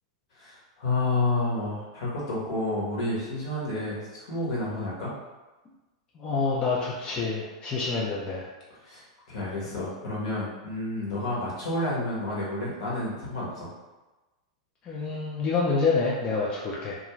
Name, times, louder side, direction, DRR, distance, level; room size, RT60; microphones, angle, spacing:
voice 1, 0.4-5.1 8.8-13.7, left 2 dB, 65° left, -6 dB, 1.2 m, -30 dB
voice 2, 6.1-8.5 14.8-17.0, left 4 dB, 30° left, -5 dB, 0.5 m, -27 dB
2.4 x 2.3 x 3.1 m, 1.1 s
hypercardioid pair, 105°, 3 cm